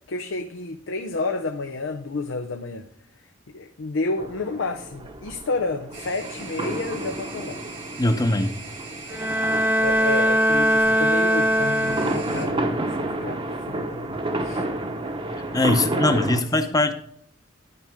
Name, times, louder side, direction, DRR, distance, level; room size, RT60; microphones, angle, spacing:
voice 1, 0.1-2.9 3.5-7.6 9.1-9.2 9.8-14.6 15.9-16.4, left 3 dB, 90° left, 0.7 m, -30 dB
sound 1, 4.2-16.4, right 1 dB, 30° right, 0.9 m, -31 dB
sound 2, 5.9-12.5, right 3 dB, 85° right, 2.9 m, -41 dB
voice 2, 8.0-8.6 15.5-16.9, left 2 dB, 20° left, 0.8 m, -21 dB
Bowed string instrument, 9.1-12.5, equal, 10° right, 0.5 m, -21 dB
12.0 x 5.6 x 3.6 m
head